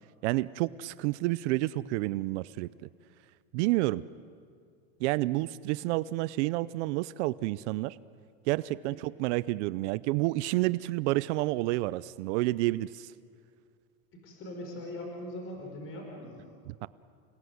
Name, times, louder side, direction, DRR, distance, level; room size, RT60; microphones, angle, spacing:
voice 1, 0.2-2.7 3.5-4.0 5.0-8.0 8.5-13.1 16.7-16.9, right 19 dB, 55° right, 17 dB, 0.6 m, -29 dB
voice 2, 14.2-16.5, left 1 dB, 30° left, 1 dB, 5.2 m, -41 dB
29.0 x 18.5 x 9.5 m, 2.3 s
supercardioid pair, 145°, 42 cm